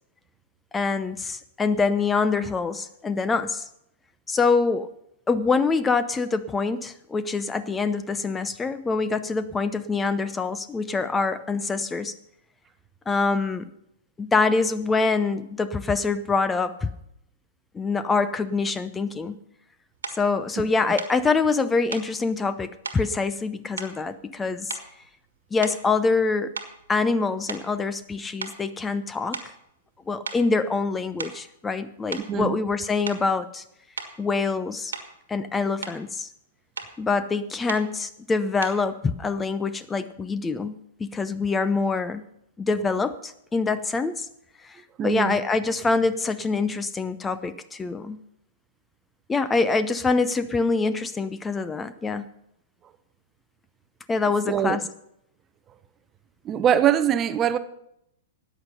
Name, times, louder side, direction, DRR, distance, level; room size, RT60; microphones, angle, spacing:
voice 1, 0.7-3.6 4.3-4.9 5.3-12.2 13.1-13.7 14.2-16.9 17.7-19.4 20.1-24.8 25.5-26.5 26.9-29.4 30.1-33.6 34.2-34.9 35.3-36.3 37.0-40.7 41.0-42.2 42.6-44.3 44.6-48.2 49.3-52.3 54.1-54.8, left 4 dB, 15° left, 0.6 m, -25 dB
sound 1, 20.0-20.2 21.0-21.2 21.9-22.1 22.8-23.1 23.8-24.4 24.7-25.1 25.6-26.0 26.5-28.1 28.4-28.6 29.3-29.6 30.3-30.5 31.0-31.5 32.1-32.3 33.1-33.3 34.0-34.2 34.9-35.2 35.6-36.0 36.8-37.0 37.7-37.9 38.6-38.9, right 5 dB, 75° right, 1.5 m, -36 dB
voice 2, 45.0-45.4 54.5-54.8 56.4-57.6, right 10 dB, 25° right, 0.7 m, -22 dB
13.5 x 9.5 x 5.5 m
figure-of-eight pair, 100°, 0 cm